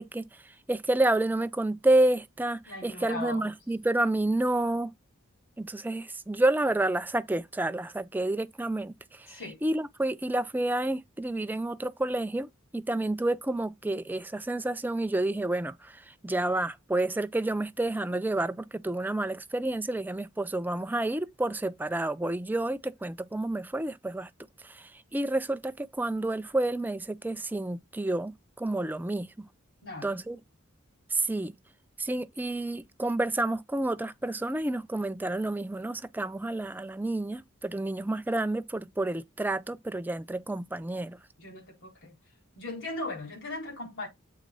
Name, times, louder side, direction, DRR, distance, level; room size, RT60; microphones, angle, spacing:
voice 1, 0.0-4.9 5.6-24.3 24.6-29.5 30.0-30.4 31.1-31.6 32.0-41.2, right 2 dB, 10° right, 0.4 m, -29 dB
voice 2, 2.7-3.5 9.3-9.6 29.8-30.1 41.4-42.1 42.5-44.1, left 2 dB, 60° left, 4.5 m, -38 dB
7.5 x 3.6 x 5.3 m
head